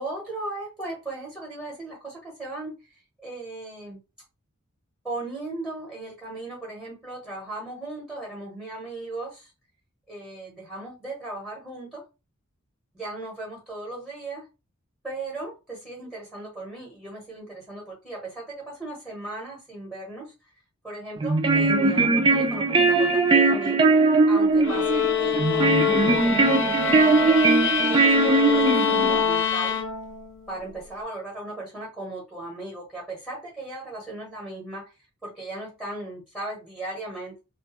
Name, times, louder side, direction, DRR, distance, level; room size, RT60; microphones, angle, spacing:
voice 1, 0.0-4.0 5.0-9.5 10.1-12.0 12.9-14.4 15.0-20.3 20.8-23.8 24.3-29.8 30.5-37.4, right 2 dB, ahead, -3 dB, 0.8 m, -37 dB
sound 1, 21.2-29.2, right 3 dB, 25° right, 0.3 m, -20 dB
sound 2, 24.6-30.3, left 6 dB, 65° left, 0.4 m, -25 dB
2.4 x 2.2 x 2.9 m, 0.28 s
head